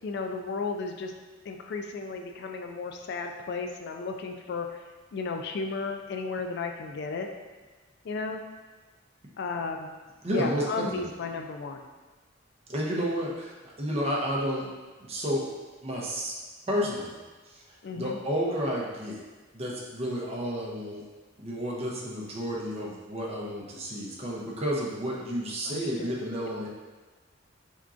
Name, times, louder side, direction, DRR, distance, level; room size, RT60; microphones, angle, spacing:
voice 1, 0.0-1.1 1.4-4.8 5.1-7.3 8.0-8.4 9.4-9.9 10.3-11.8 17.8-18.2 25.7-26.1, left 4 dB, 60° left, 4 dB, 0.3 m, -34 dB
voice 2, 10.2-11.1 12.7-14.7 15.0-15.5 15.8-16.3 16.7-17.2 17.5-17.6 17.9-19.2 19.5-21.0 21.4-26.7, equal, 30° right, -3 dB, 0.7 m, -31 dB
4.4 x 3.6 x 2.5 m, 1.3 s
head